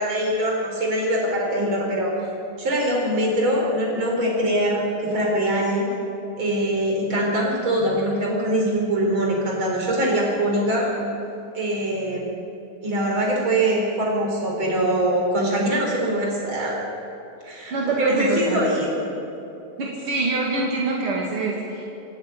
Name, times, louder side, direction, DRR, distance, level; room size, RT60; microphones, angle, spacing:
voice 1, 0.0-2.1 2.6-5.9 6.4-10.9 11.5-12.3 12.8-16.8 17.4-19.0, right 1 dB, 65° right, -1 dB, 5.1 m, -23 dB
voice 2, 17.7-18.7 19.8-21.8, right 2 dB, 85° right, -3 dB, 3.2 m, -25 dB
27.5 x 10.5 x 9.3 m, 2.8 s
omnidirectional pair, 2.4 m